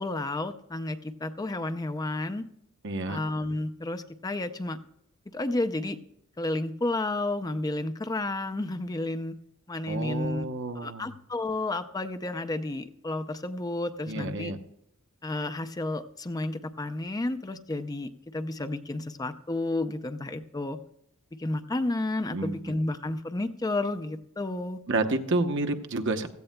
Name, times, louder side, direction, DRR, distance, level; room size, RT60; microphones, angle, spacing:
voice 1, 0.0-2.5 3.1-4.8 5.3-6.0 6.4-9.4 9.7-10.4 10.7-14.5 15.2-20.8 21.3-24.8, left 2 dB, 20° left, 10 dB, 0.5 m, -31 dB
voice 2, 2.8-3.2 9.9-11.1 14.1-14.6 22.3-22.6 24.9-26.3, right 2 dB, 60° right, 6 dB, 0.9 m, -29 dB
16.5 x 14.0 x 2.2 m, 0.78 s
head